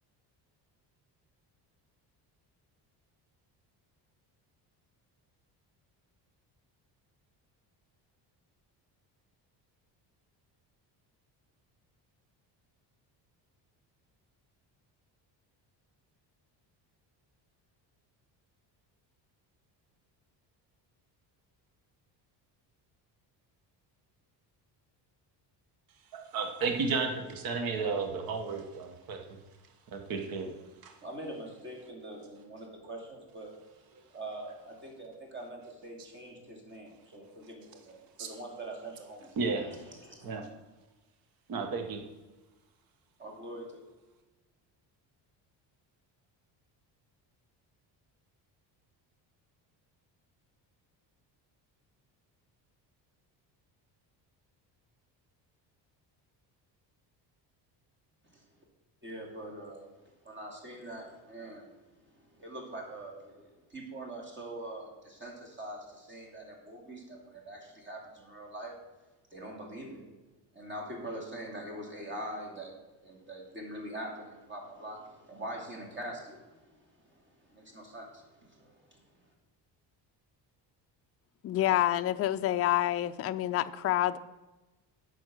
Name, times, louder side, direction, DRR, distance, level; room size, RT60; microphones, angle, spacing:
voice 1, 26.1-29.2 29.9-30.5 30.8-30.9 38.2-38.3 39.4-39.7 40.2-40.5 41.5-42.0, right 4 dB, 50° right, 4 dB, 1.3 m, -33 dB
voice 2, 31.0-33.5 34.1-40.4 43.2-43.8 58.3-58.4 59.0-59.9 60.2-61.7 62.3-68.8 69.3-70.0 70.5-72.7 73.0-76.6 77.5-79.0, right 1 dB, 25° right, 1 dB, 2.7 m, -43 dB
voice 3, 81.4-84.2, left 13 dB, 35° left, 10 dB, 0.4 m, -28 dB
9.4 x 6.4 x 6.4 m, 1.1 s
cardioid pair, 130°, 44 cm